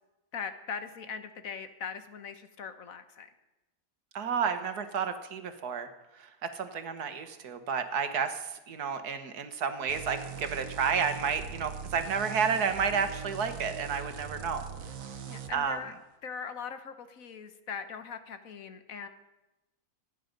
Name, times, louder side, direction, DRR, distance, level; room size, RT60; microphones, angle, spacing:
voice 1, 0.3-3.3 15.3-15.9 16.2-19.1, left 6 dB, 65° left, 9 dB, 1.5 m, -40 dB
voice 2, 4.2-5.9 6.6-14.6 15.5-15.8, right 6 dB, 90° right, 8 dB, 1.8 m, -31 dB
sound 1, 9.9-15.5, right 7 dB, 60° right, 1.4 m, -41 dB
26.0 x 9.4 x 5.2 m, 1.0 s
omnidirectional pair, 1.6 m